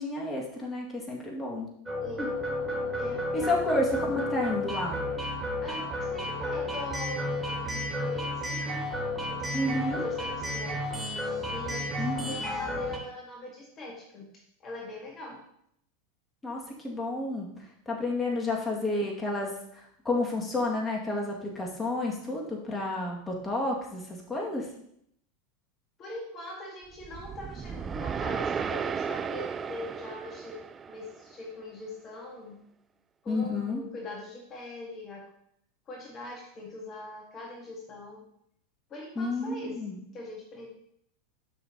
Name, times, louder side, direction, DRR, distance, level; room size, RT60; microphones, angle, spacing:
voice 1, 0.0-1.7 2.2-2.3 3.3-5.0 9.5-10.0 12.0-12.4 16.4-17.5 17.9-24.7 33.3-33.8 39.2-40.0, left 2 dB, 15° left, -2 dB, 2.1 m, -31 dB
sound 1, 1.9-13.0, left 1 dB, 10° right, 2.7 m, -32 dB
voice 2, 2.0-2.4 3.0-3.6 5.6-8.8 9.2-11.1 11.4-15.4 26.0-32.6 33.2-35.3 35.9-38.2 38.9-39.8 40.1-40.7, left 2 dB, 35° left, -1 dB, 1.7 m, -42 dB
sound 2, 27.0-31.3, right 6 dB, 25° right, 0.4 m, -34 dB
11.0 x 5.9 x 2.9 m, 0.72 s
hypercardioid pair, 90°, 0 cm